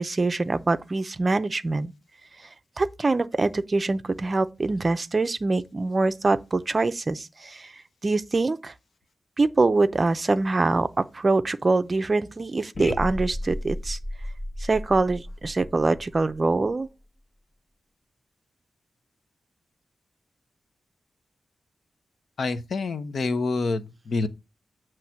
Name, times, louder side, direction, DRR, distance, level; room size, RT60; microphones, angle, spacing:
voice 1, 0.0-1.9 2.8-7.7 8.0-8.7 9.4-14.0 14.6-16.9, right 3 dB, 30° right, 0.6 m, -24 dB
sound 1, 12.7-16.9, left 1 dB, 35° left, 0.9 m, -34 dB
voice 2, 22.4-24.3, left 3 dB, 60° left, 0.8 m, -27 dB
7.7 x 3.1 x 5.8 m
wide cardioid pair, 170°, 0 cm